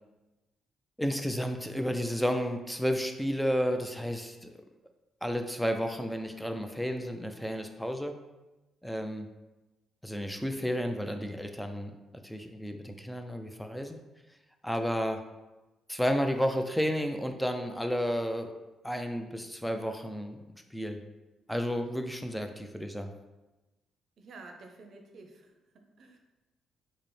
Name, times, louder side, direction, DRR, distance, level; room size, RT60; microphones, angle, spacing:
voice 1, 1.0-4.5 5.2-8.2 8.8-9.3 10.0-11.9 12.2-14.0 14.6-15.2 15.9-18.5 18.8-21.0 21.5-23.1, equal, 5° left, 6 dB, 0.4 m, -32 dB
voice 2, 24.2-26.2, right 3 dB, 60° right, 4 dB, 0.6 m, -51 dB
4.8 x 2.0 x 3.2 m, 1.1 s
cardioid pair, 90°, 0 cm